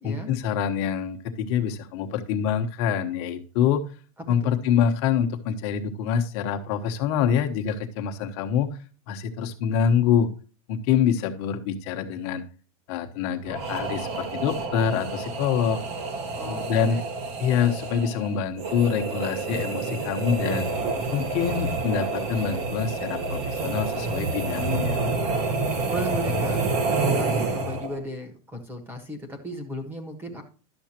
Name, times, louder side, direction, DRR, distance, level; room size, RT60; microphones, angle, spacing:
voice 1, 0.0-3.8 4.3-8.7 9.1-10.3 10.7-12.4 12.9-15.8 16.5-17.0 17.4-20.6 21.1-25.0, left 8 dB, 45° left, 5 dB, 1.2 m, -25 dB
voice 2, 4.2-4.6 16.3-17.0 25.8-30.4, equal, 10° right, 7 dB, 1.4 m, -36 dB
sound 1, 13.5-28.0, right 3 dB, 35° right, 1.2 m, -28 dB
11.5 x 7.1 x 2.9 m, 0.38 s
supercardioid pair, 175°, 19 cm